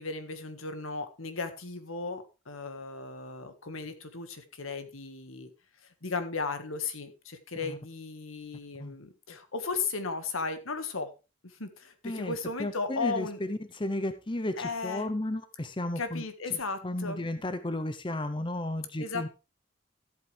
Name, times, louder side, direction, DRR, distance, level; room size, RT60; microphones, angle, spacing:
voice 1, 0.0-5.5 6.0-11.1 11.4-13.4 14.6-15.1 16.0-17.2 19.0-19.3, left 4 dB, 90° left, 9 dB, 1.7 m, -35 dB
voice 2, 12.0-19.3, left 1 dB, 25° left, 10 dB, 0.7 m, -34 dB
13.5 x 8.5 x 3.3 m, 0.29 s
head